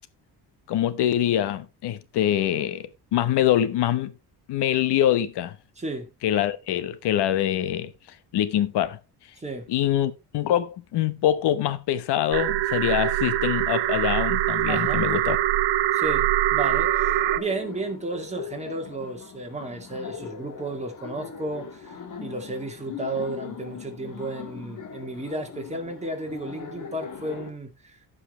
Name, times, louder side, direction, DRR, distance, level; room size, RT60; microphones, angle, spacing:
voice 1, 0.7-4.1 4.5-5.5 6.2-7.9 8.3-9.0 9.7-15.4, left 11 dB, 75° left, 1.1 m, -24 dB
voice 2, 5.8-6.1 9.4-9.7 14.7-15.1 15.9-28.0, right 2 dB, 15° right, 2.3 m, -33 dB
sound 1, 12.3-17.4, right 14 dB, 85° right, 0.9 m, -23 dB
Laughter, 16.6-27.5, left 6 dB, 50° left, 2.1 m, -40 dB
15.0 x 5.6 x 3.1 m
cardioid pair, 125°, 41 cm